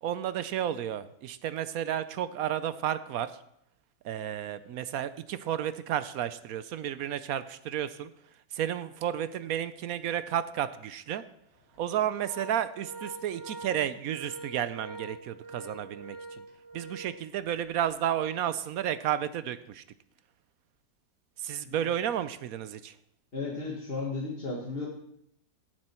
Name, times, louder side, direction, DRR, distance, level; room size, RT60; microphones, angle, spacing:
voice 1, 0.0-3.3 4.0-8.1 8.5-11.2 11.8-16.2 16.7-19.8 21.4-22.9, right 10 dB, 70° right, 14 dB, 0.9 m, -32 dB
Organ, 10.0-10.2 10.6-10.7 11.5-17.8, right 2 dB, 50° right, 3.3 m, -45 dB
voice 2, 23.3-24.9, left 3 dB, 35° left, -2 dB, 1.6 m, -34 dB
15.5 x 7.7 x 4.4 m, 0.76 s
omnidirectional pair, 1.9 m